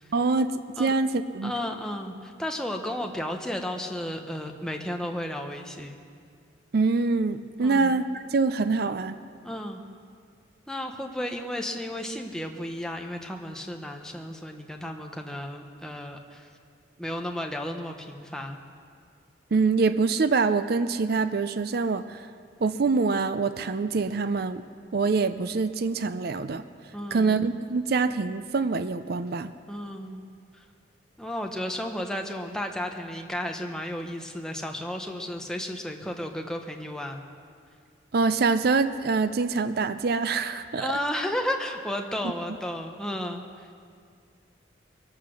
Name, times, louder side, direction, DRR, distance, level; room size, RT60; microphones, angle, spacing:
voice 1, 0.1-0.5 0.8-1.5 6.7-9.2 19.5-22.3 22.6-24.6 24.9-26.6 27.1-29.5 38.1-40.9, right 4 dB, 55° right, 11 dB, 0.5 m, -25 dB
voice 2, 1.4-6.0 7.6-8.0 9.4-9.8 10.7-16.5 17.0-18.6 26.9-27.4 29.7-30.3 30.5-30.6 31.2-37.2 40.8-43.8, left 1 dB, 5° left, 3 dB, 1.0 m, -33 dB
22.5 x 8.2 x 6.4 m, 2.2 s
head